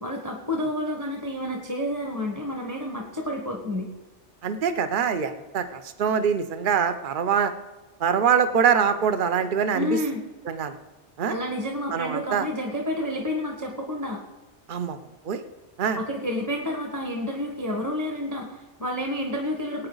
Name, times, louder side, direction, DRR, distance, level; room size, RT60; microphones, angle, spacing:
voice 1, 0.0-3.9 9.7-10.2 11.3-14.2 15.9-19.9, left 1 dB, 15° right, 1 dB, 1.3 m, -29 dB
voice 2, 4.4-7.5 8.0-10.0 10.5-10.7 11.2-11.3 11.9-12.5 14.7-15.0 15.2-15.4 15.8-16.0, right 7 dB, 50° right, 9 dB, 0.9 m, -24 dB
19.0 x 8.9 x 4.0 m, 1.2 s
omnidirectional pair, 1.2 m